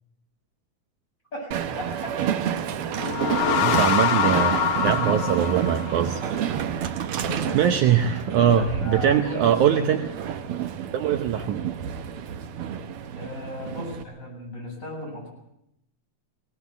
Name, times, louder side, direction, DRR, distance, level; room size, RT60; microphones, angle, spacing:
voice 1, 1.3-2.4 7.2-7.6 8.6-9.9 13.1-15.3, left 1 dB, 20° left, -2 dB, 8.2 m, -36 dB
Train, 1.5-14.0, right 9 dB, 90° right, 1.2 m, -29 dB
sound 1, 2.9-6.4, left 8 dB, 65° left, 1.8 m, -24 dB
voice 2, 3.6-6.3 7.0-7.3 7.5-10.0 10.9-11.6, right 9 dB, 70° right, 7 dB, 2.1 m, -22 dB
20.5 x 18.5 x 8.3 m, 0.80 s
omnidirectional pair, 4.0 m